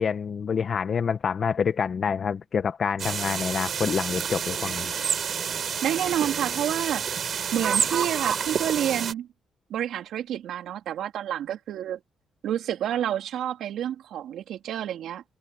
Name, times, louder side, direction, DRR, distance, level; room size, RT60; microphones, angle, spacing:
voice 1, 0.0-4.9, left 6 dB, 50° left, 1.4 m, -27 dB
sound 1, 3.0-9.1, right 7 dB, 55° right, 5.2 m, -28 dB
voice 2, 5.8-7.1 7.5-9.3 9.7-12.0 12.4-15.2, right 10 dB, 75° right, 3.7 m, -29 dB
cardioid pair, 90°, 0 cm